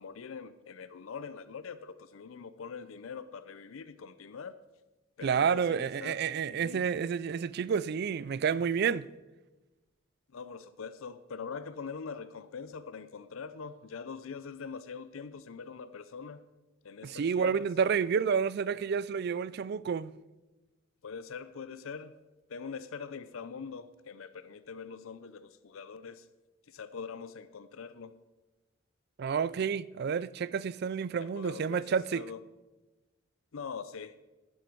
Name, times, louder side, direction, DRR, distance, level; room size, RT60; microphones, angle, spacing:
voice 1, 0.0-4.6 5.2-6.2 6.5-6.9 10.3-16.4 16.8-17.7 21.0-22.2 22.5-26.3 26.7-28.1 31.2-31.8 32.1-32.4 33.5-34.2, left 5 dB, 85° left, 0.5 m, -43 dB
voice 2, 5.2-9.1 17.0-20.1 29.2-32.2, right 6 dB, 50° right, 0.3 m, -30 dB
11.0 x 11.0 x 4.6 m
head